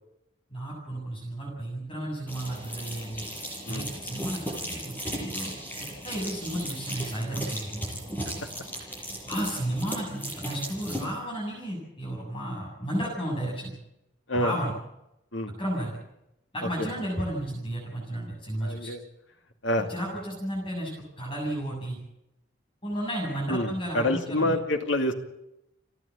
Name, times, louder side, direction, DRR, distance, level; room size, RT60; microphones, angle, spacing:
voice 1, 0.5-3.3 3.7-5.5 6.0-7.8 9.3-13.8 14.3-14.7 15.6-16.0 16.5-18.9 19.9-20.9 21.2-22.0 22.8-24.6, right 1 dB, 25° left, -3 dB, 7.4 m, -33 dB
sound 1, 2.3-11.1, equal, 10° left, 6.7 m, -36 dB
voice 2, 18.6-19.0 19.6-19.9 23.5-25.1, left 1 dB, 70° left, 5 dB, 2.5 m, -27 dB
29.5 x 11.0 x 8.6 m, 0.86 s
head